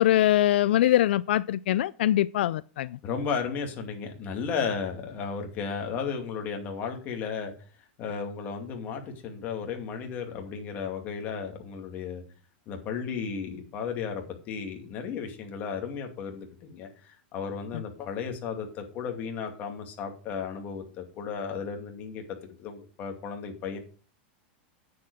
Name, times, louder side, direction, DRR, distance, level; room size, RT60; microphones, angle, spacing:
voice 1, 0.0-3.0, left 13 dB, 75° left, 0.4 m, -23 dB
voice 2, 3.0-7.5 8.0-12.2 12.7-23.8, left 6 dB, 30° left, 2.4 m, -34 dB
9.6 x 7.9 x 4.9 m
supercardioid pair, 160°, 6 cm